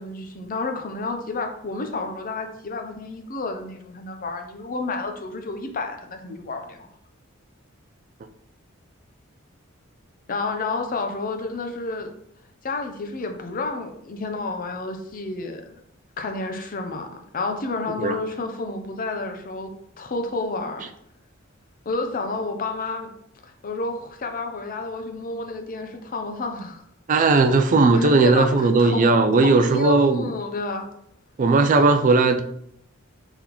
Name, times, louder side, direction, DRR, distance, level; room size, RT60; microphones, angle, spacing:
voice 1, 0.0-6.9 10.3-12.1 12.6-15.8 16.2-17.1 17.3-19.7 20.0-20.9 21.9-23.1 23.4-26.8 27.9-29.1 29.4-30.9, left 3 dB, 40° left, 5 dB, 0.6 m, -30 dB
voice 2, 27.1-30.3 31.4-32.4, right 3 dB, 40° right, 7 dB, 0.4 m, -17 dB
3.9 x 3.6 x 2.9 m, 0.73 s
head